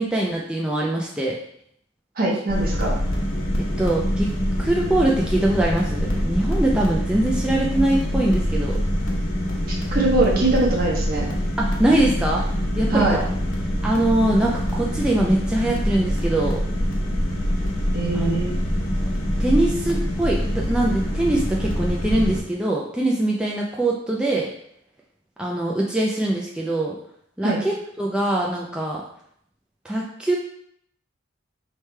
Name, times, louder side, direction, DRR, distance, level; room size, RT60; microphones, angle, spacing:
voice 1, 0.0-1.4 3.8-4.3 4.6-8.8 11.6-12.4 12.8-13.3 13.8-16.6 18.1-18.4 19.4-24.5 25.4-27.0 27.4-29.0 29.8-30.4, right 1 dB, 5° right, -3 dB, 0.4 m, -22 dB
voice 2, 2.2-2.9 9.7-11.3 12.9-13.2 17.9-18.5 27.4-27.6, right 2 dB, 50° right, -3 dB, 1.1 m, -22 dB
sound 1, 2.5-22.4, equal, 85° left, 1.1 m, -24 dB
4.4 x 3.3 x 3.2 m, 0.69 s
head